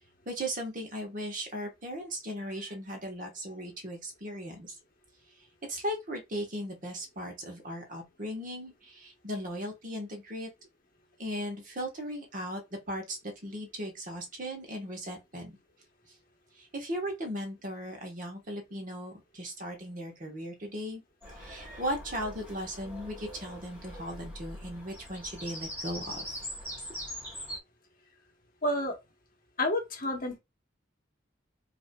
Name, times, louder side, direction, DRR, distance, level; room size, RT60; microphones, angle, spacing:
voice 1, 0.3-4.8 5.7-10.5 11.2-15.6 16.6-26.4, equal, 40° right, 1.1 m, -37 dB
Bird vocalization bird call bird song, 21.2-27.6, equal, 10° right, 1.8 m, -42 dB
voice 2, 28.6-29.0 29.6-30.4, left 1 dB, 45° left, 1.0 m, -29 dB
5.4 x 2.7 x 2.2 m
head